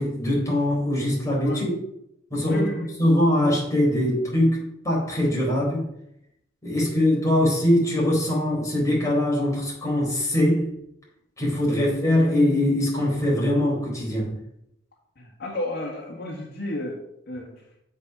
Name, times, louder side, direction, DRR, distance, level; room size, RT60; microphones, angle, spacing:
voice 1, 0.0-1.7 2.3-2.7 3.0-5.8 6.6-10.7 11.4-14.3, left 1 dB, 20° left, -3 dB, 4.3 m, -22 dB
voice 2, 2.4-2.9 6.7-6.8 11.8-11.9 15.2-17.0 17.3-17.6, left 1 dB, 60° left, -1 dB, 1.7 m, -32 dB
8.1 x 6.6 x 6.0 m, 0.79 s
head